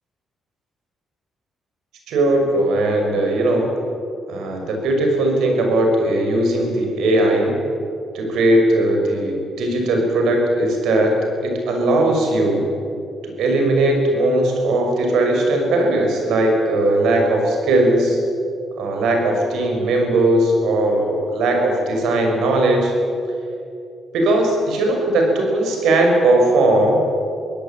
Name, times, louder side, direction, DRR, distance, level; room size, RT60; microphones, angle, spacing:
voice 1, 2.1-3.7 4.3-7.6 8.1-11.2 11.4-12.7 13.2-18.2 18.8-22.9 24.1-27.0, right 1 dB, 80° right, 2 dB, 6.0 m, -18 dB
23.5 x 17.0 x 9.1 m, 2.5 s
cardioid pair, 90°, 0 cm